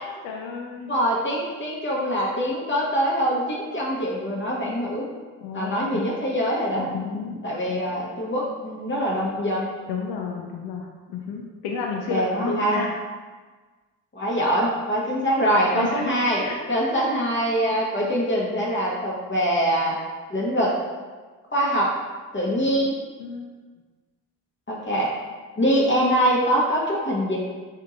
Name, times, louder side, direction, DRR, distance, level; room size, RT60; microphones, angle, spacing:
voice 1, 0.0-0.9 5.4-6.0 6.7-7.9 9.9-12.9 15.7-16.1 16.4-16.6 16.9-17.0 22.6-22.9 23.2-23.5, left 5 dB, 60° left, 0 dB, 0.6 m, -32 dB
voice 2, 0.9-5.1 5.5-6.9 7.4-9.7 12.1-12.8 14.1-20.0 20.3-20.7 21.5-21.9 22.3-22.9 24.7-25.1 25.6-27.4, equal, 25° left, -5 dB, 1.1 m, -23 dB
3.6 x 2.7 x 3.8 m, 1.4 s
hypercardioid pair, 45°, 42 cm